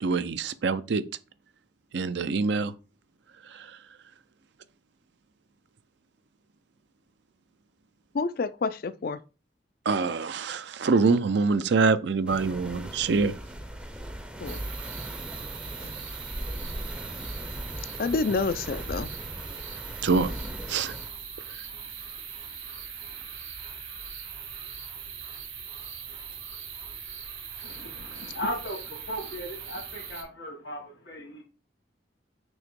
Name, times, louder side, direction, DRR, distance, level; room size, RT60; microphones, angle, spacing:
voice 1, 0.0-1.0 1.9-2.7 3.5-3.8 9.9-13.4 20.0-20.3 20.7-21.0, right 4 dB, 60° right, 0.5 m, -25 dB
voice 2, 8.1-9.2 14.4-14.6 15.8-15.9 18.0-19.1, left 4 dB, 50° left, 0.4 m, -28 dB
sound 1, 12.3-21.1, equal, 5° right, 0.5 m, -38 dB
sound 2, 14.4-30.2, right 7 dB, 85° right, 2.3 m, -40 dB
voice 3, 27.6-31.4, equal, 80° left, 1.9 m, -37 dB
6.2 x 2.9 x 5.2 m
head